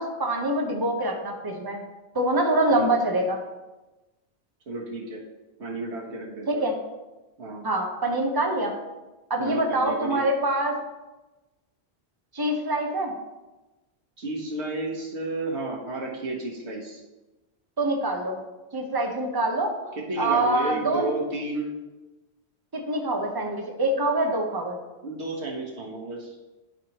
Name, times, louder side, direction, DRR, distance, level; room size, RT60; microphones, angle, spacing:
voice 1, 0.0-1.8 2.1-3.4 6.5-6.7 7.6-8.7 9.3-10.7 12.3-13.1 17.8-18.4 18.7-19.9 20.2-21.1 22.7-24.8, right 1 dB, 20° right, 1 dB, 1.0 m, -25 dB
voice 2, 4.7-5.2 5.6-6.7 7.4-7.6 9.4-10.2 14.2-17.0 20.0-21.7 25.0-26.4, right 2 dB, 85° right, -2 dB, 1.6 m, -32 dB
12.0 x 4.7 x 3.0 m, 1.1 s
omnidirectional pair, 1.1 m